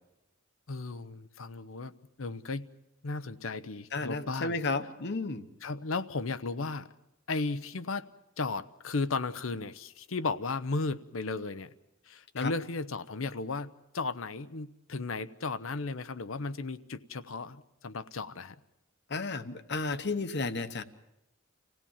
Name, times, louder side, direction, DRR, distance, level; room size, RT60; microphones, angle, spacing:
voice 1, 0.7-1.9 2.2-2.7 3.0-4.6 5.6-6.9 7.3-8.1 8.4-11.7 12.1-18.6, left 3 dB, 75° left, 13 dB, 0.8 m, -35 dB
voice 2, 3.9-5.4 12.4-12.5 19.1-20.8, left 3 dB, 60° left, 11 dB, 1.1 m, -33 dB
26.5 x 17.0 x 7.2 m, 0.89 s
head